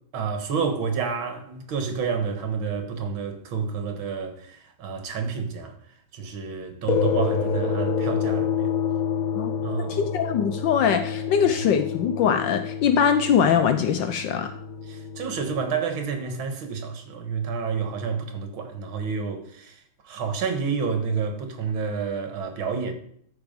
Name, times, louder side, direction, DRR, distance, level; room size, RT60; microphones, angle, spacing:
voice 1, 0.1-5.8 6.1-8.7 9.6-10.1 14.9-22.9, right 5 dB, 70° right, 2.2 m, -29 dB
sound 1, 6.9-15.6, left 6 dB, 55° left, 1.1 m, -28 dB
voice 2, 9.8-14.5, left 7 dB, 75° left, 1.2 m, -22 dB
13.5 x 4.8 x 5.3 m
omnidirectional pair, 2.3 m